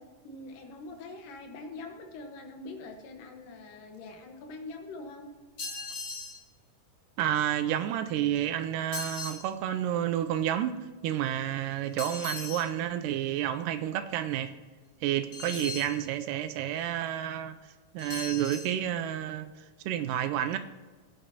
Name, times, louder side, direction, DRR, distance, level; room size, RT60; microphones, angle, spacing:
voice 1, 0.0-5.3, left 3 dB, 90° left, 3.0 m, -44 dB
sound 1, 5.6-6.4 8.9-9.5 12.0-12.7 15.3-16.0 18.0-18.7, left 4 dB, 45° left, 1.3 m, -38 dB
voice 2, 7.2-10.8 11.0-14.5 15.0-17.6 17.9-19.5 19.9-20.6, right 11 dB, 85° right, 2.2 m, -30 dB
18.5 x 8.9 x 2.8 m
omnidirectional pair, 3.7 m